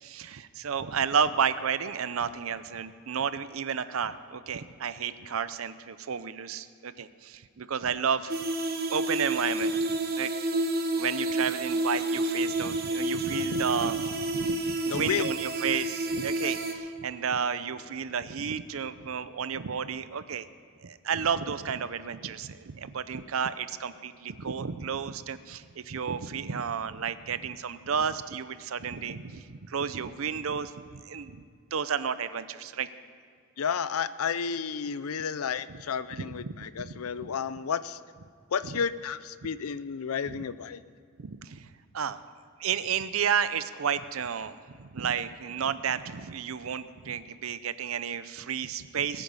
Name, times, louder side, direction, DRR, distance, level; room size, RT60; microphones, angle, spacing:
voice 1, 0.0-8.4 8.9-10.3 11.0-20.5 20.8-31.4 31.7-32.9 35.7-35.8 36.1-36.9 37.2-37.4 38.6-38.8 40.3-40.4 41.2-42.2 42.6-49.2, right 7 dB, 70° right, 14 dB, 0.6 m, -32 dB
sound 1, 8.3-16.7, right 1 dB, 45° right, 1.2 m, -30 dB
voice 2, 14.9-15.3 33.6-38.0 38.5-40.8, left 6 dB, 80° left, 16 dB, 0.5 m, -31 dB
20.5 x 9.1 x 5.5 m, 2.2 s
head